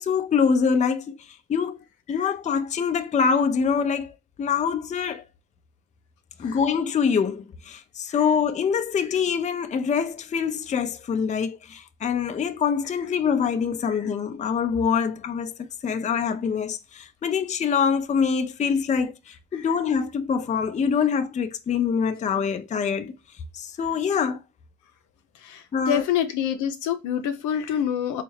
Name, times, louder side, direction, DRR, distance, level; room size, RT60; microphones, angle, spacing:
voice 1, 0.0-1.8 2.1-5.2 6.4-23.1 23.5-24.4 25.7-26.0, left 6 dB, 25° left, 0.4 m, -25 dB
voice 2, 25.4-28.2, left 9 dB, 80° left, 0.6 m, -26 dB
4.0 x 2.4 x 3.1 m
cardioid pair, 90°, 30 cm